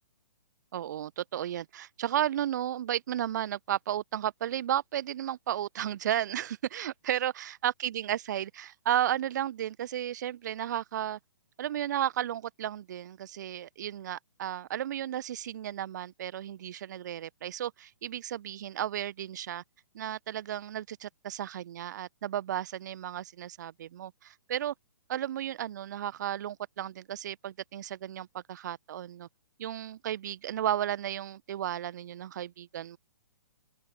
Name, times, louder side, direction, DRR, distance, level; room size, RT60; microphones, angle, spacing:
voice 1, 0.7-11.2 11.6-19.6 19.9-24.7 25.1-29.3 29.6-33.0, right 11 dB, 45° right, 1.0 m, -33 dB
open air
figure-of-eight pair, 125°, 14 cm